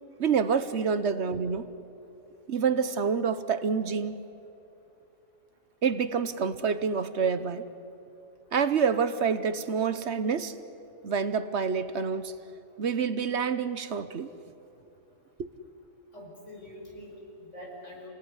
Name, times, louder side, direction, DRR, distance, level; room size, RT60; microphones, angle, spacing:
voice 1, 0.2-1.7 2.5-4.2 5.8-7.6 8.5-10.5 11.0-12.3 12.8-14.3 15.4-15.5, right 6 dB, 65° right, 12 dB, 1.2 m, -27 dB
voice 2, 16.1-18.1, left 1 dB, 70° left, -2 dB, 6.2 m, -45 dB
27.5 x 19.0 x 9.8 m, 2.9 s
omnidirectional pair, 1.3 m